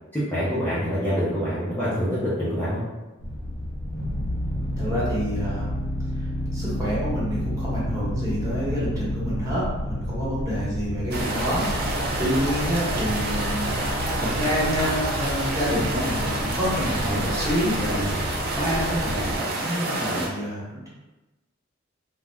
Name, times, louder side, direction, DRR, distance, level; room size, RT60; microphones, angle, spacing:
voice 1, 0.1-2.8, equal, 10° left, -11 dB, 0.5 m, -25 dB
sound 1, 3.2-19.4, left 1 dB, 80° left, 0.6 m, -30 dB
voice 2, 4.8-5.7 6.5-13.7 14.2-18.2 18.5-20.9, equal, 15° right, -8 dB, 0.9 m, -28 dB
sound 2, 11.1-20.3, right 2 dB, 50° right, 0.5 m, -28 dB
2.3 x 2.1 x 3.2 m, 1.1 s
head